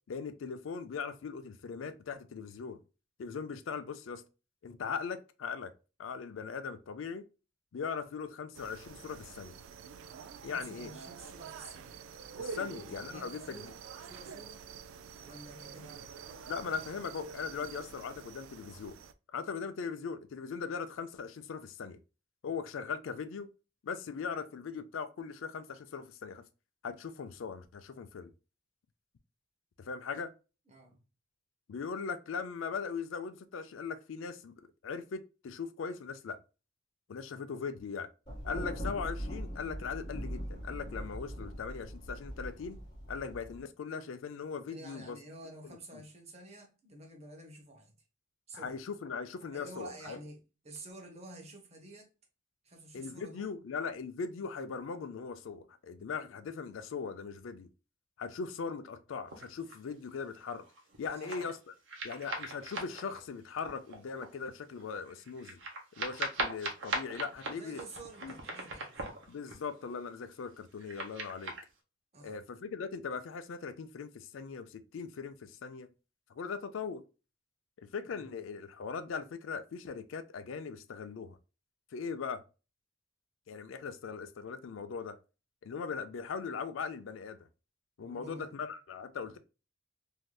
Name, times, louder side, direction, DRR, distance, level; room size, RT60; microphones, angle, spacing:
voice 1, 0.1-2.8 3.2-4.2 4.6-5.7 6.0-7.2 7.7-9.5 10.4-10.9 12.4-13.7 16.5-19.0 19.3-22.0 22.4-23.5 23.8-26.4 26.8-28.3 29.8-30.3 31.7-34.5 34.8-36.4 37.1-38.1 38.4-42.8 43.1-45.2 45.6-46.0 48.5-50.2 52.9-57.7 58.2-60.6 61.0-61.6 62.0-65.6 66.0-67.8 68.2-68.3 69.3-71.5 72.2-75.9 76.3-77.0 77.8-81.4 81.9-82.4 83.5-85.2 85.6-87.4 88.0-89.4, left 5 dB, 75° left, 0.4 m, -39 dB
sound 1, 8.5-19.1, right 6 dB, 90° right, 0.3 m, -47 dB
voice 2, 10.4-12.0 12.5-14.6 15.2-16.1 30.7-31.0 44.7-47.9 48.5-48.7 49.5-52.1 52.6-53.5 61.1-61.5 67.5-69.2 72.1-72.4 78.0-78.3 88.0-88.6 89.2-89.4, right 2 dB, 35° right, 0.9 m, -50 dB
Thunder, 38.3-43.6, equal, 20° left, 1.5 m, -41 dB
sound 2, 59.3-59.8 60.5-61.6 61.9-64.4 64.8-64.9 65.1-70.0 70.4-71.6, right 2 dB, 65° right, 0.9 m, -40 dB
3.3 x 2.7 x 2.2 m
head